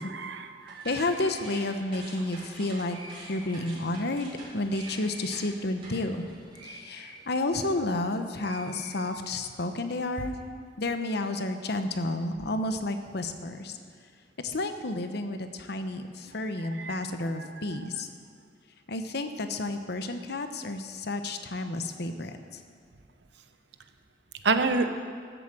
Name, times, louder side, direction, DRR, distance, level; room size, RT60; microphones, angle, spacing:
voice 1, 0.0-0.8 16.8-17.0 17.4-17.8 24.4-24.9, right 3 dB, 70° right, 8 dB, 0.9 m, -28 dB
sound 1, 0.7-8.0 8.3-9.5, right 1 dB, 30° right, 4.0 m, -46 dB
voice 2, 0.8-3.0 3.3-6.2 6.6-10.3 10.8-13.8 14.4-18.1 18.9-22.6, left 2 dB, 65° left, 8 dB, 1.0 m, -31 dB
13.5 x 8.2 x 7.7 m, 2.1 s
head